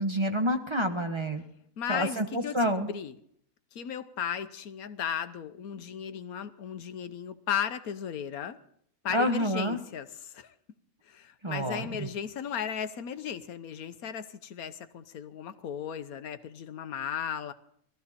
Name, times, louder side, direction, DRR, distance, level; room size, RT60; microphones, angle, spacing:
voice 1, 0.0-1.4 1.9-2.9 9.1-9.8 11.4-12.1, equal, 20° right, 5 dB, 1.0 m, -28 dB
voice 2, 1.8-3.2 3.7-8.6 9.0-10.5 11.1-17.5, left 8 dB, 90° left, 10 dB, 1.4 m, -36 dB
20.5 x 14.0 x 4.2 m, 0.68 s
omnidirectional pair, 1.5 m